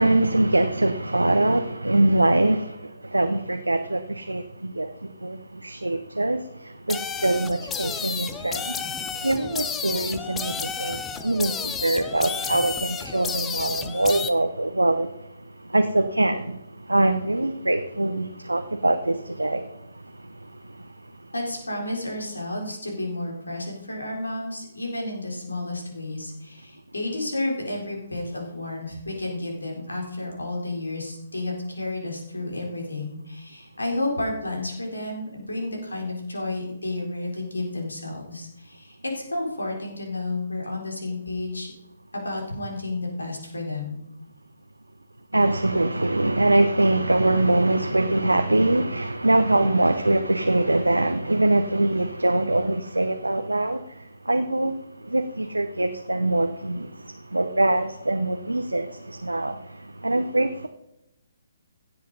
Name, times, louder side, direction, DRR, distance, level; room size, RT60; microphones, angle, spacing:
voice 1, 0.0-8.8 9.2-15.1 15.7-16.6 16.9-19.7 45.3-53.8 54.3-54.7 55.0-60.7, right 2 dB, 85° right, 7 dB, 0.8 m, -23 dB
sound 1, 6.9-14.3, left 6 dB, 10° left, 0.6 m, -31 dB
voice 2, 21.3-41.7 42.1-44.0, left 2 dB, 75° left, 0 dB, 4.0 m, -31 dB
16.5 x 7.7 x 4.0 m, 0.88 s
figure-of-eight pair, 135°, 0 cm